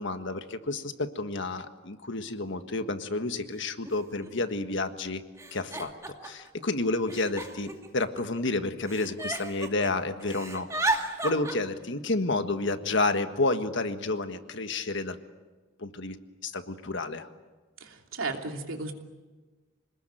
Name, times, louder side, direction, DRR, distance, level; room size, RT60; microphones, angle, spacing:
voice 1, 0.0-5.2 5.5-15.2 15.8-16.2 16.4-17.3, left 2 dB, 65° left, 8 dB, 1.6 m, -30 dB
Giggle, 2.8-2.9 3.8-3.9 4.2-4.7 5.4-6.5 7.1-8.4 8.9-9.9 10.2-11.5, right 2 dB, 15° right, 2.4 m, -33 dB
voice 2, 17.8-18.9, right 3 dB, 85° right, 3 dB, 3.0 m, -34 dB
27.0 x 20.0 x 9.1 m, 1.3 s
head